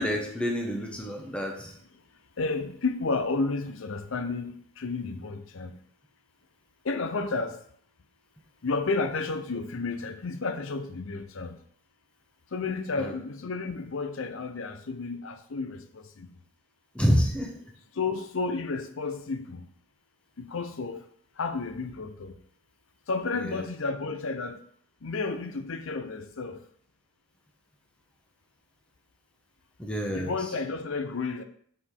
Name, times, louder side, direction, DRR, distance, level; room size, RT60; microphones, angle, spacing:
voice 1, 0.0-1.7 13.0-13.1 16.9-17.5 23.4-23.6 29.8-30.4, equal, 5° left, 0.9 m, -28 dB
voice 2, 2.4-4.5 4.8-5.7 6.9-7.6 8.6-11.5 12.5-15.8 18.0-19.6 20.4-21.0 21.4-22.3 23.1-24.5 25.0-26.6 30.1-31.4, left 3 dB, 60° left, 0.6 m, -31 dB
6.2 x 5.0 x 3.7 m
head